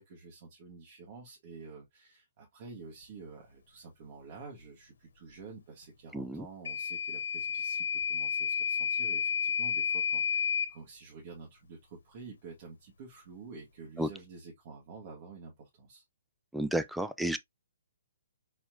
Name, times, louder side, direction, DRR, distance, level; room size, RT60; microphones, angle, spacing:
voice 1, 0.0-16.0, right 4 dB, 45° right, 2.0 m, -49 dB
voice 2, 6.1-6.4 14.0-14.1 16.5-17.4, right 1 dB, ahead, 0.4 m, -31 dB
Microwave oven / Alarm, 6.7-10.7, left 7 dB, 70° left, 1.2 m, -31 dB
4.4 x 4.3 x 2.6 m
hypercardioid pair, 145°, 0 cm